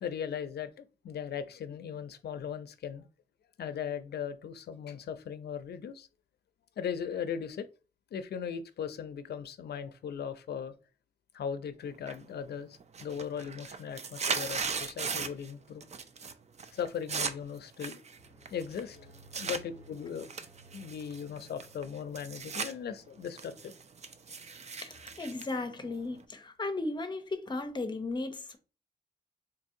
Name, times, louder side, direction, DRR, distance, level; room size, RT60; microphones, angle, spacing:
voice 1, 0.0-3.0 3.6-6.1 6.8-7.7 8.1-10.7 11.3-15.9 16.7-18.0 18.5-20.3 20.7-23.7, left 7 dB, 70° left, 0.4 m, -38 dB
sound 1, 12.1-12.5 12.8-15.5 15.8-16.3 16.6-19.6 20.2-22.7 23.1-26.2, right 5 dB, 40° right, 0.4 m, -37 dB
sound 2, 18.2-23.3, right 1 dB, 60° right, 1.5 m, -57 dB
voice 2, 24.8-28.6, left 2 dB, 25° left, 0.6 m, -36 dB
4.0 x 2.6 x 2.5 m
wide cardioid pair, 115°, 17 cm